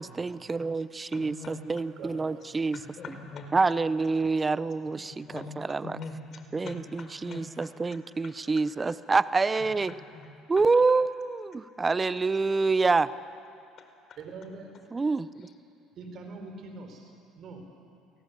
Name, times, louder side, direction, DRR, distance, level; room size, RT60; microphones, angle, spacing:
voice 1, 0.0-2.8 3.5-6.0 6.5-9.9 10.5-13.1 14.9-15.5, right 4 dB, 25° right, 15 dB, 0.8 m, -27 dB
voice 2, 1.1-1.6 2.7-3.5 4.8-7.5 7.9-8.3 9.5-10.3 13.8-14.2 15.4-15.5, left 4 dB, 50° left, 6 dB, 4.6 m, -44 dB
voice 3, 2.0-2.3 14.2-14.7 16.0-17.6, right 3 dB, 55° right, 5 dB, 5.1 m, -43 dB
30.0 x 18.0 x 8.5 m, 2.6 s
supercardioid pair, 85°, 0 cm